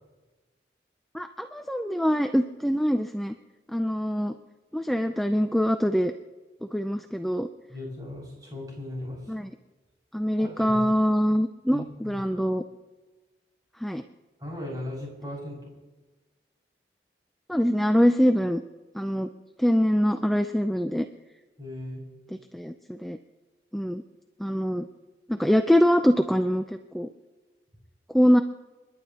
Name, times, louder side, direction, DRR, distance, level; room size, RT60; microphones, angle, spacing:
voice 1, 1.1-3.4 3.7-4.3 4.7-6.1 6.6-7.5 9.3-9.5 10.1-12.6 13.8-14.0 17.5-18.6 18.9-19.3 19.6-21.1 22.5-23.2 23.7-24.0 24.4-24.9 25.3-27.1 28.1-28.4, equal, ahead, 7 dB, 0.4 m, -24 dB
voice 2, 7.7-9.2 10.4-10.8 11.7-12.2 14.4-15.7 21.6-22.0, left 1 dB, 20° right, -4 dB, 6.1 m, -37 dB
29.0 x 11.5 x 2.9 m, 1.2 s
head